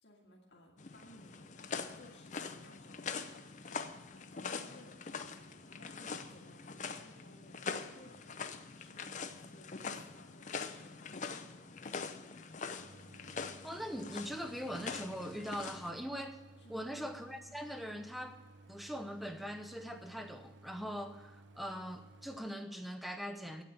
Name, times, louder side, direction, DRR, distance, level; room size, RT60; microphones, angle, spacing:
voice 1, 0.0-1.6 1.9-12.3 16.6-17.0, left 1 dB, 70° left, -2 dB, 1.9 m, -60 dB
sound 1, 0.8-15.9, left 5 dB, 40° left, 0.6 m, -44 dB
Idling, 12.8-22.4, right 2 dB, 80° right, 0.7 m, -58 dB
voice 2, 13.6-16.4 16.7-18.4 18.7-23.6, equal, ahead, 6 dB, 0.7 m, -41 dB
9.0 x 8.5 x 7.7 m, 1.2 s
head